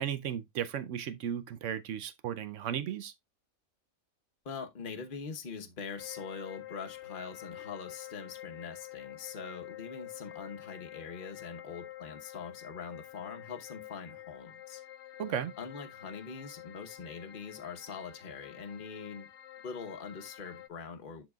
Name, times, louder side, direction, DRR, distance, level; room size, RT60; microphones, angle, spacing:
voice 1, 0.0-3.1 15.2-15.5, right 9 dB, 70° right, 0.9 m, -35 dB
voice 2, 4.4-14.8 15.6-19.3 19.6-21.2, left 5 dB, 40° left, 1.0 m, -43 dB
sound 1, 6.0-20.7, left 13 dB, 65° left, 0.8 m, -48 dB
11.5 x 4.0 x 2.3 m
omnidirectional pair, 1.4 m